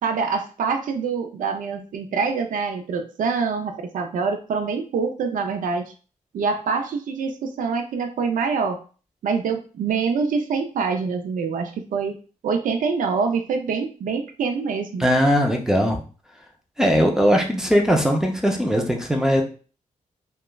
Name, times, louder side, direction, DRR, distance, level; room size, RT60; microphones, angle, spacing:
voice 1, 0.0-5.9 6.3-8.8 9.2-12.2 12.4-15.1, right 5 dB, 75° right, 6 dB, 0.4 m, -25 dB
voice 2, 15.0-16.0 16.8-19.4, equal, 5° right, 2 dB, 0.4 m, -19 dB
3.0 x 2.2 x 2.2 m, 0.37 s
wide cardioid pair, 165°, 14 cm